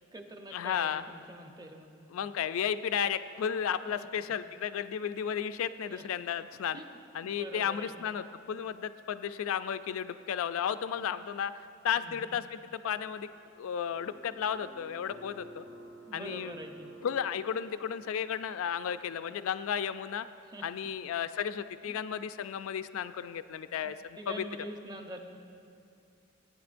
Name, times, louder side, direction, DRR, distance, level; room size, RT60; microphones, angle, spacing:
voice 1, 0.0-1.9 3.9-4.1 5.9-6.1 6.7-8.1 11.0-11.1 11.9-12.2 16.0-16.9 20.4-20.7 21.8-22.0 24.2-25.2, right 1 dB, 20° right, 4 dB, 0.7 m, -45 dB
voice 2, 0.5-1.0 2.1-6.8 7.1-11.5 11.8-13.3 13.6-15.6 16.1-16.5 17.0-20.3 20.6-24.4, left 8 dB, 80° left, 12 dB, 0.3 m, -33 dB
sound 1, 13.9-19.1, right 1 dB, 75° right, 1.2 m, -52 dB
19.0 x 9.2 x 2.6 m, 2.5 s
head